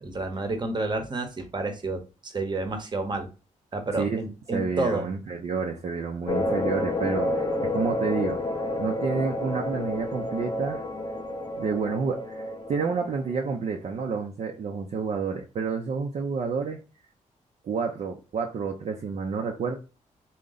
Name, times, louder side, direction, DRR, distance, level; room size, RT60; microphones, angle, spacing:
voice 1, 0.0-3.3 3.7-5.1, right 2 dB, 35° right, 6 dB, 0.9 m, -30 dB
voice 2, 3.9-4.2 4.5-10.9 11.6-16.8 17.6-19.8, right 5 dB, 55° right, 2 dB, 0.5 m, -29 dB
sound 1, 6.3-13.7, left 1 dB, 30° left, 0.7 m, -30 dB
3.7 x 2.2 x 3.9 m, 0.32 s
cardioid pair, 100°, 13 cm